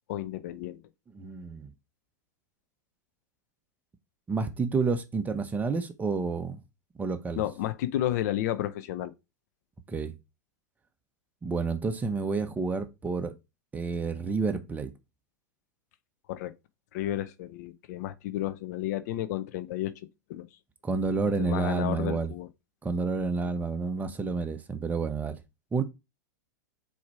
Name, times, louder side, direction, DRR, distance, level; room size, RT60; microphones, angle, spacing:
voice 1, 0.1-0.8 7.4-9.1 16.3-16.5 16.9-20.0 20.3-20.5 21.2-22.5, left 13 dB, 60° left, 0.6 m, -32 dB
voice 2, 1.1-1.7 4.3-6.6 7.0-7.4 9.9-10.2 11.4-13.3 13.7-14.9 20.8-22.3 22.8-25.4 25.7-25.8, right 4 dB, 15° right, 0.9 m, -29 dB
4.8 x 4.3 x 4.7 m
hypercardioid pair, 105°, 10 cm